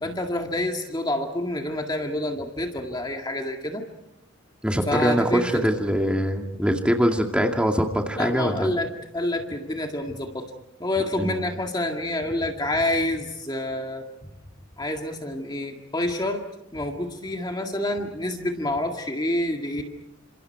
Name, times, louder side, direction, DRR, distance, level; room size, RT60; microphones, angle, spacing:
voice 1, 0.0-3.9 4.9-5.6 8.2-10.5 10.8-14.1 14.8-16.4 16.7-19.8, left 1 dB, 20° left, 3 dB, 1.9 m, -28 dB
voice 2, 4.6-8.7 11.2-11.4, equal, 5° right, 3 dB, 2.2 m, -23 dB
29.5 x 27.0 x 4.6 m, 0.90 s
head